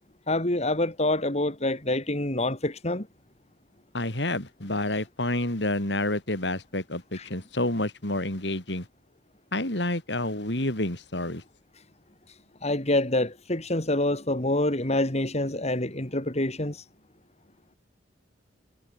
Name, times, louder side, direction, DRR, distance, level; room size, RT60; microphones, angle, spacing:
voice 1, 0.3-3.1 7.1-7.3 12.6-16.8, left 1 dB, 35° left, 3.6 m, -26 dB
voice 2, 3.9-8.9 9.5-11.4, left 1 dB, 70° left, 5.3 m, -29 dB
head